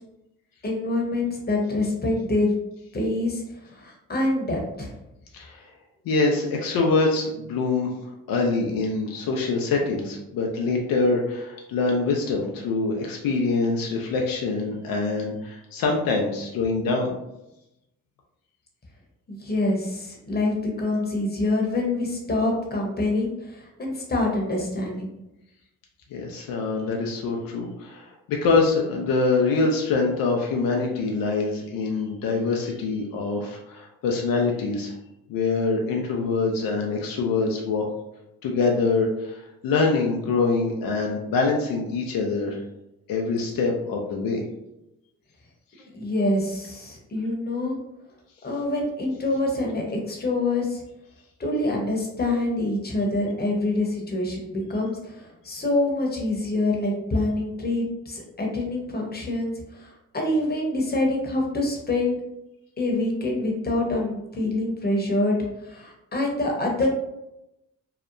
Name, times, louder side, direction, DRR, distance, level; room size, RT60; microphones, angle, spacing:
voice 1, 0.6-2.5 2.9-4.9 19.3-25.1 45.9-47.7 48.4-50.8 51.4-62.2 62.8-66.9, left 2 dB, 30° left, 0 dB, 0.9 m, -26 dB
voice 2, 5.3-5.7 6.1-17.1 26.1-34.9 35.3-37.9 38.4-42.6 43.1-44.4 45.8-45.9, left 3 dB, 80° left, 0 dB, 0.5 m, -24 dB
2.8 x 2.0 x 2.5 m, 0.88 s
supercardioid pair, 55°, 34 cm